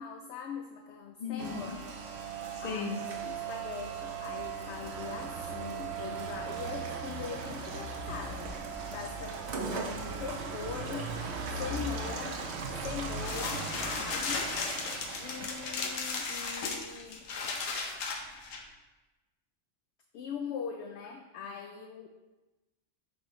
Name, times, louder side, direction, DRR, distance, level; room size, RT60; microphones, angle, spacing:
voice 1, 0.0-1.8 2.2-8.6 8.9-11.2 11.5-12.4 12.8-14.6 15.2-17.3 20.1-22.1, left 6 dB, 65° left, 4 dB, 0.8 m, -41 dB
voice 2, 1.2-1.8 2.6-3.0, left 5 dB, 50° left, 2 dB, 1.1 m, -36 dB
Rain, 1.4-16.8, right 4 dB, 60° right, 1.0 m, -38 dB
sound 1, 13.1-18.6, left 4 dB, 90° left, 1.2 m, -36 dB
8.3 x 5.3 x 3.1 m, 1.1 s
omnidirectional pair, 1.3 m